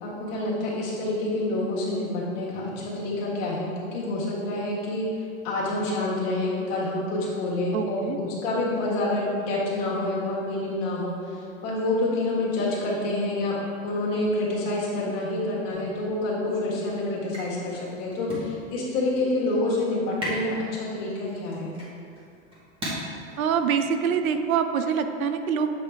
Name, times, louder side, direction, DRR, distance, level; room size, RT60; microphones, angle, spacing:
voice 1, 0.0-13.6 13.8-21.7, left 2 dB, 35° left, -5 dB, 1.6 m, -28 dB
voice 2, 7.7-8.2 23.4-25.7, right 7 dB, 90° right, 8 dB, 0.7 m, -25 dB
sound 1, 15.7-24.5, equal, 15° right, 1.4 m, -39 dB
7.5 x 5.1 x 3.4 m, 2.5 s
supercardioid pair, 155°, 41 cm